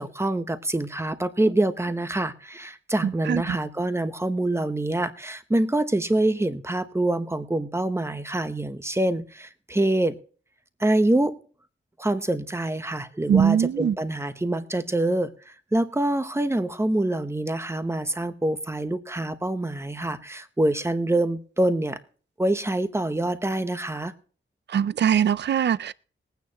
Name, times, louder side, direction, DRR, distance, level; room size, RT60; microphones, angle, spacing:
voice 1, 0.0-10.2 10.8-11.4 12.0-22.0 22.4-24.1, right 1 dB, 10° right, 1.0 m, -25 dB
voice 2, 3.0-3.6 13.3-14.0 24.7-25.9, right 8 dB, 55° right, 0.4 m, -22 dB
21.0 x 9.2 x 3.0 m
wide cardioid pair, 160°, 21 cm